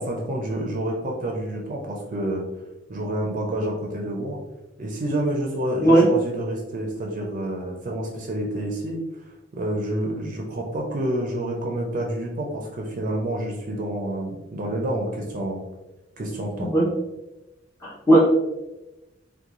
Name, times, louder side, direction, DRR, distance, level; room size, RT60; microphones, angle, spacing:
voice 1, 0.0-2.5 2.9-4.4 4.8-9.0 9.5-15.6 16.2-16.7, right 1 dB, 45° right, 0 dB, 0.4 m, -28 dB
voice 2, 17.8-18.2, right 1 dB, 15° left, -5 dB, 0.5 m, -16 dB
2.9 x 2.1 x 2.5 m, 0.99 s
head